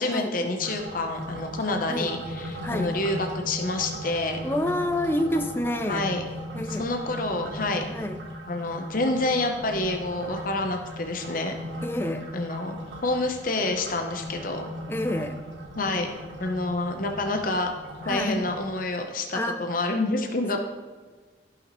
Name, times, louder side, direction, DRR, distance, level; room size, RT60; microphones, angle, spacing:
voice 1, 0.0-4.4 5.9-6.2 6.8-7.8 8.5-11.5 12.3-14.6 15.8-16.1 16.4-17.7 18.0-20.6, left 2 dB, 45° left, 4 dB, 0.8 m, -28 dB
sound 1, 0.6-18.8, equal, 70° right, 1.3 m, -38 dB
voice 2, 2.6-3.0 4.4-6.0 6.5-6.9 7.9-8.2 11.8-12.3 14.9-15.4 18.1-18.4 19.3-19.6, left 1 dB, 10° left, 8 dB, 0.5 m, -28 dB
14.0 x 5.9 x 3.1 m, 1.4 s
head